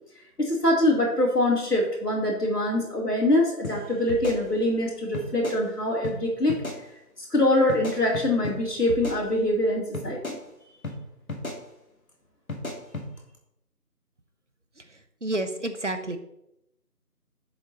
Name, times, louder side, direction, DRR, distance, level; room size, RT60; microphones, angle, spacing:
voice 1, 0.4-6.6 7.2-10.4, left 1 dB, 80° left, -1 dB, 2.9 m, -24 dB
sound 1, 3.6-3.8 4.1-4.8 5.1-5.6 6.0-6.2 6.5-6.8 7.7-8.6 8.9-9.6 9.9-10.4 10.8-11.0 11.3-11.6 12.5-13.1, left 2 dB, 60° left, 1.9 m, -35 dB
voice 2, 14.8-16.2, right 1 dB, 50° right, 9 dB, 0.9 m, -31 dB
8.2 x 7.1 x 2.9 m, 0.83 s
figure-of-eight pair, 170°, 46 cm